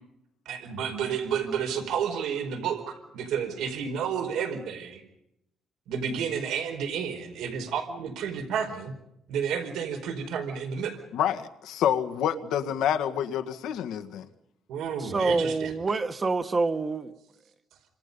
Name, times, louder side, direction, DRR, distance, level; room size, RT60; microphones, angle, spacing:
voice 1, 0.4-5.0 5.9-8.9 9.3-11.0 14.7-15.7, right 7 dB, 85° right, 5 dB, 4.6 m, -31 dB
voice 2, 11.1-14.2, left 9 dB, 85° left, 8 dB, 1.8 m, -28 dB
voice 3, 15.0-17.1, right 3 dB, 20° right, 9 dB, 1.3 m, -26 dB
29.0 x 26.0 x 5.5 m, 0.82 s
cardioid pair, 160°, 0 cm